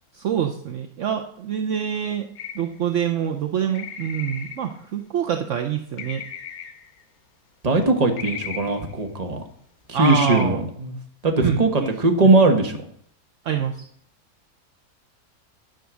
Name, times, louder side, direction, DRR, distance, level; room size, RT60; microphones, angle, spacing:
voice 1, 0.1-2.3 2.5-6.2 9.9-10.7 11.4-11.9 13.4-13.8, right 9 dB, 60° right, 5 dB, 1.0 m, -26 dB
sound 1, 2.4-2.7 3.7-4.7 6.0-6.9 8.2-8.9 10.0-10.4, left 7 dB, 80° left, 1.6 m, -35 dB
voice 2, 7.6-9.4 9.9-10.9 11.2-12.8, right 2 dB, 25° right, 4 dB, 1.4 m, -20 dB
10.5 x 6.7 x 6.2 m, 0.65 s
omnidirectional pair, 1.5 m